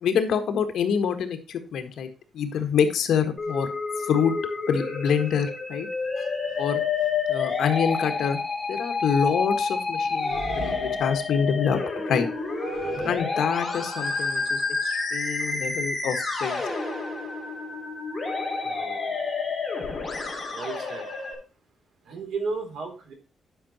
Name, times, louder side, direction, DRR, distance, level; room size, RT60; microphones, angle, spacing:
voice 1, 0.0-2.1 2.3-3.7 4.0-4.3 4.7-5.9 6.2-6.3 6.6-6.8 7.3-8.4 8.7-11.8 12.1-12.3 13.0-16.6, left 7 dB, 70° left, 7 dB, 1.5 m, -26 dB
Musical instrument, 3.4-21.3, left 4 dB, 15° left, 3.3 m, -29 dB
sound 1, 5.1-5.3 6.5-6.6 7.0-7.2 7.5-7.7 10.0-11.3 12.3-13.2, right 4 dB, 40° right, 1.2 m, -38 dB
voice 2, 18.6-19.2 20.5-21.1 22.0-23.1, right 4 dB, 75° right, 3 dB, 3.7 m, -34 dB
11.0 x 5.8 x 4.3 m, 0.34 s
wide cardioid pair, 175°, 0 cm